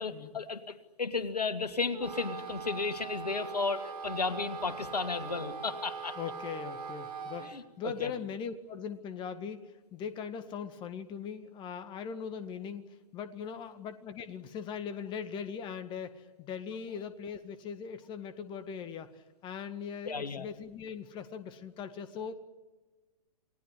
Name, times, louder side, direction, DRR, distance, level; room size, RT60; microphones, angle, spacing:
voice 1, 0.0-6.2 7.4-8.1 20.1-20.5, left 4 dB, 75° left, 8 dB, 2.6 m, -34 dB
Wind instrument woodwind instrument, 1.9-7.6, right 5 dB, 75° right, 3.7 m, -41 dB
voice 2, 6.2-12.8 13.1-19.1 19.4-22.3, left 7 dB, 25° left, 10 dB, 1.8 m, -40 dB
29.5 x 19.5 x 9.9 m, 1.2 s
figure-of-eight pair, 115°, 20 cm